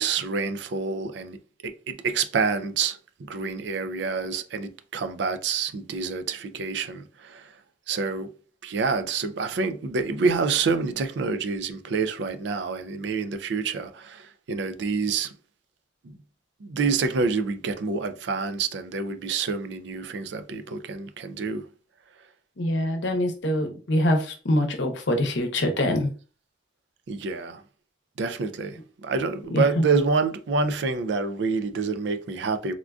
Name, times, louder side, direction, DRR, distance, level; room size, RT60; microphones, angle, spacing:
voice 1, 0.0-1.4 1.6-7.6 7.9-8.3 8.6-15.3 16.0-16.2 16.6-21.7 27.1-27.6 28.2-32.7, right 4 dB, 70° right, 0.4 m, -27 dB
voice 2, 22.6-26.1 29.5-29.8, left 1 dB, 75° left, 0.7 m, -24 dB
3.6 x 2.4 x 2.3 m
head